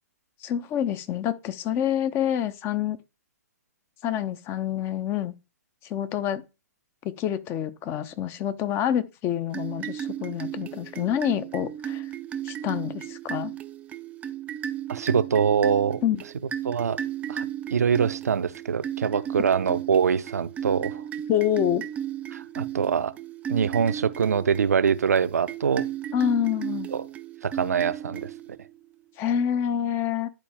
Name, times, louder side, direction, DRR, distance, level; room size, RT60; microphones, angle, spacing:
voice 1, 0.4-3.0 4.0-5.3 5.9-6.4 7.0-12.0 12.4-13.5 16.0-16.2 21.3-21.8 26.1-26.9 29.2-30.3, left 10 dB, 25° left, 0.6 m, -27 dB
sound 1, 9.5-28.7, right 10 dB, 15° right, 0.5 m, -35 dB
voice 2, 14.9-16.0 16.6-17.0 17.3-17.5 17.7-21.0 22.3-23.1 23.5-25.9 26.9-27.0 27.4-28.3, right 7 dB, 70° right, 0.6 m, -24 dB
10.5 x 4.2 x 3.5 m
figure-of-eight pair, 120°, 9 cm